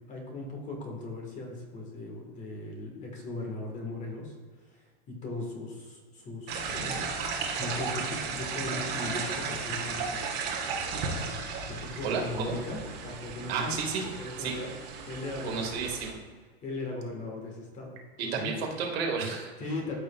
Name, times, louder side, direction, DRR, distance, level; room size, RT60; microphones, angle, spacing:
voice 1, 0.1-4.3 4.7-7.2 7.5-10.2 11.6-13.7 14.2-14.7 15.1-15.9 16.6-18.5 19.6-20.0, left 2 dB, 20° left, 0 dB, 1.5 m, -38 dB
sound 1, 6.5-16.1, right 5 dB, 30° right, 1.3 m, -35 dB
voice 2, 12.0-12.6 13.5-14.1 14.4-14.6 15.4-16.2 18.2-19.5, right 5 dB, 70° right, 1 dB, 1.8 m, -31 dB
13.0 x 5.1 x 2.3 m, 1.5 s
supercardioid pair, 155°, 32 cm